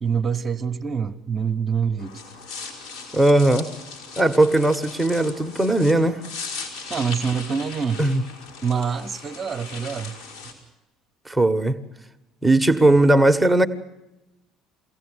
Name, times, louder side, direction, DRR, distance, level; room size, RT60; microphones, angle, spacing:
voice 1, 0.0-2.2 6.9-8.0 8.6-10.1, right 6 dB, 30° right, 1.2 m, -25 dB
sound 1, 2.0-10.5, left 4 dB, 70° left, 5.0 m, -38 dB
voice 2, 3.1-3.7 4.2-6.2 8.0-8.2 11.3-11.8 12.4-13.7, right 1 dB, 5° right, 1.4 m, -18 dB
23.5 x 17.0 x 8.0 m
hypercardioid pair, 60°, 0 cm